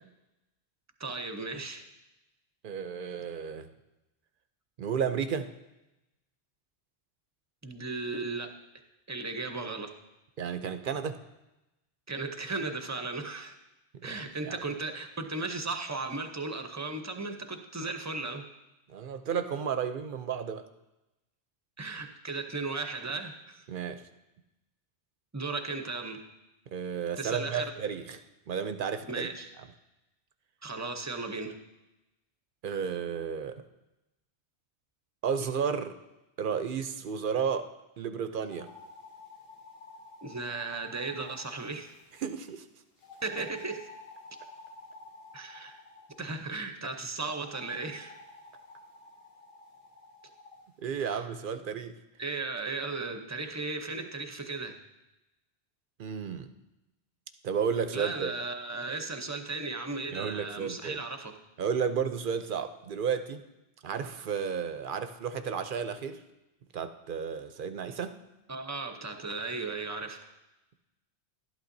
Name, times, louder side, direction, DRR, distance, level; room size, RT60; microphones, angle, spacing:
voice 1, 1.0-1.8 7.6-8.5 9.1-9.9 12.1-13.5 14.0-18.4 21.8-23.6 25.3-26.3 27.2-27.7 29.1-29.5 30.6-31.6 40.2-41.9 43.2-43.9 45.3-45.8 46.2-48.1 51.1-51.2 52.2-54.8 57.9-61.3 68.5-70.3, right 3 dB, 20° right, 6 dB, 0.5 m, -36 dB
voice 2, 2.6-3.7 4.8-5.5 10.4-11.2 14.0-14.6 18.9-20.6 23.7-24.0 26.7-28.2 28.5-29.3 32.6-33.6 35.2-35.9 36.4-37.7 38.0-38.7 42.2-42.7 50.8-52.0 56.0-56.5 57.4-58.3 60.1-61.0 61.6-63.4 63.8-66.2 66.7-68.2, right 7 dB, 60° right, 9 dB, 0.6 m, -32 dB
sound 1, 38.4-42.3 43.0-46.3 47.4-50.6, left 3 dB, 55° left, 1.4 m, -51 dB
12.0 x 11.5 x 2.6 m, 0.99 s
omnidirectional pair, 1.1 m